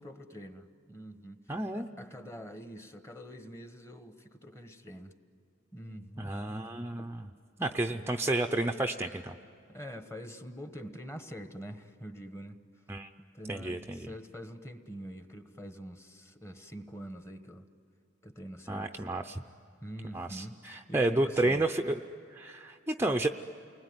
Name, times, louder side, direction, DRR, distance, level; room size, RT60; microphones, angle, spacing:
voice 1, 0.0-5.2 5.7-6.4 7.0-7.1 7.9-8.1 9.7-12.6 13.3-17.7 18.2-19.1 19.8-21.6, equal, 15° left, 8 dB, 1.3 m, -45 dB
voice 2, 1.5-1.9 6.2-7.3 7.6-9.4 12.9-13.1 13.5-14.1 18.7-19.4 20.1-22.0 22.3-23.3, right 2 dB, 10° right, 4 dB, 0.6 m, -31 dB
29.5 x 20.5 x 9.6 m, 2.7 s
head